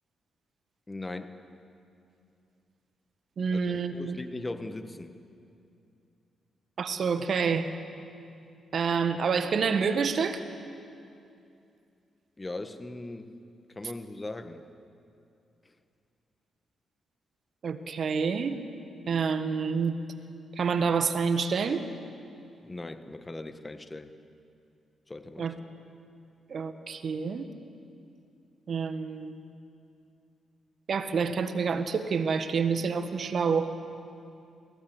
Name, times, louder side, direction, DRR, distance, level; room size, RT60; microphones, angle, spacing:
voice 1, 0.9-1.4 3.5-5.1 12.4-13.3 13.8-14.7 22.6-24.1 25.1-25.5, left 2 dB, 25° left, 9 dB, 1.7 m, -39 dB
voice 2, 3.4-4.2 6.8-7.7 8.7-10.4 17.6-18.6 19.1-20.0 20.6-21.8 25.4-25.5 26.5-27.5 28.7-29.3 30.9-33.7, right 5 dB, 60° right, 9 dB, 1.5 m, -28 dB
28.0 x 17.0 x 8.3 m, 2.6 s
hypercardioid pair, 40°, 0 cm